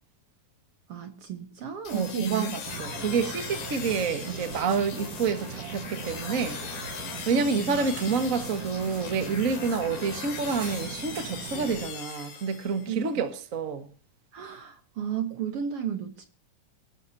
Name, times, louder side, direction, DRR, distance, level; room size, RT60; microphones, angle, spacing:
voice 1, 0.9-2.5 7.3-7.8 12.9-13.0 14.3-16.3, right 8 dB, 55° right, 1.9 m, -33 dB
sound 1, 1.8-13.0, left 7 dB, 85° left, 3.8 m, -40 dB
voice 2, 1.9-2.5 2.8-6.8 7.2-13.9, right 5 dB, 35° right, 1.4 m, -28 dB
sound 2, 2.6-11.9, right 7 dB, 75° right, 3.1 m, -40 dB
25.0 x 12.5 x 2.8 m
omnidirectional pair, 3.7 m